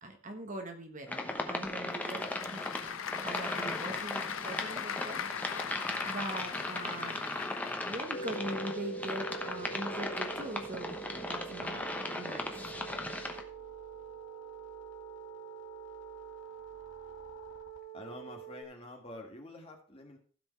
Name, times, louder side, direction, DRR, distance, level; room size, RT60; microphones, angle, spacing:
voice 1, 0.0-2.6 3.2-5.2 6.0-7.5 7.8-11.9 12.1-12.4, right 1 dB, 35° right, 5 dB, 1.3 m, -42 dB
sound 1, 1.1-13.4, left 2 dB, 5° left, 1.0 m, -37 dB
Applause / Crowd, 1.7-8.4, left 7 dB, 80° left, 0.7 m, -40 dB
sound 2, 8.1-18.6, right 4 dB, 60° left, 1.4 m, -44 dB
voice 2, 17.9-20.2, left 1 dB, 30° left, 2 dB, 1.9 m, -47 dB
15.5 x 5.3 x 4.6 m, 0.42 s
head